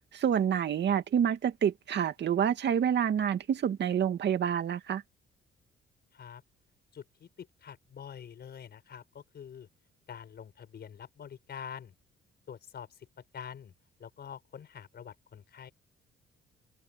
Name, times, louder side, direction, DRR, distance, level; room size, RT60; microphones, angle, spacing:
voice 1, 0.1-5.0, right 8 dB, 60° right, 2.3 m, -28 dB
voice 2, 6.1-6.4 6.9-9.7 10.1-11.9 12.5-13.7 14.0-15.7, left 8 dB, 55° left, 5.2 m, -46 dB
cardioid pair, 90°, 20 cm